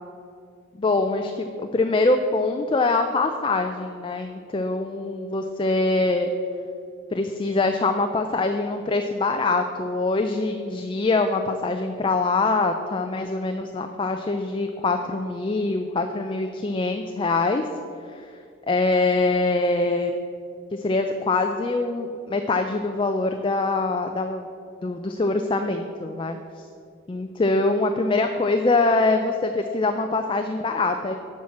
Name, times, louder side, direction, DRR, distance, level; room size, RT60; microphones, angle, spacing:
voice 1, 0.8-6.3 7.1-17.6 18.1-18.3 18.7-20.1 20.7-24.5 24.8-26.4 27.1-31.2, left 3 dB, 25° left, 6 dB, 0.3 m, -24 dB
7.5 x 5.7 x 7.2 m, 2.4 s
head